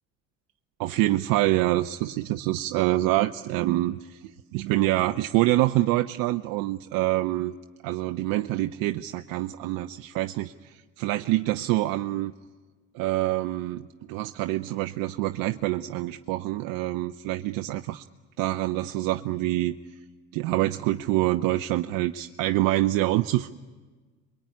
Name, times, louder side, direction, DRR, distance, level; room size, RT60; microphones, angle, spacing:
voice 1, 0.8-7.6 7.8-12.3 12.9-18.0 18.4-19.8 20.3-23.5, right 16 dB, 65° right, 7 dB, 0.9 m, -26 dB
27.0 x 22.5 x 9.6 m, 1.3 s
hypercardioid pair, 70°, 38 cm